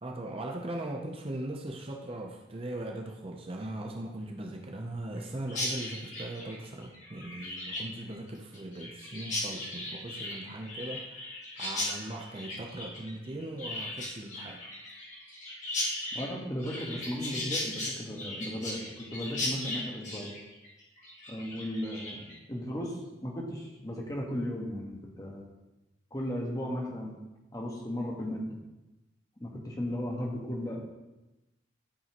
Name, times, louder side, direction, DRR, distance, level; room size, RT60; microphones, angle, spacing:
voice 1, 0.0-11.3 11.6-14.7, right 1 dB, 30° right, 1 dB, 0.6 m, -39 dB
Chirp tweet, 5.5-22.4, left 1 dB, 40° left, 1.9 m, -37 dB
voice 2, 16.1-20.3 21.3-25.5 26.1-27.2 27.5-28.6 29.4-30.9, equal, 20° left, -1 dB, 1.3 m, -36 dB
12.5 x 5.4 x 3.0 m, 1.0 s
head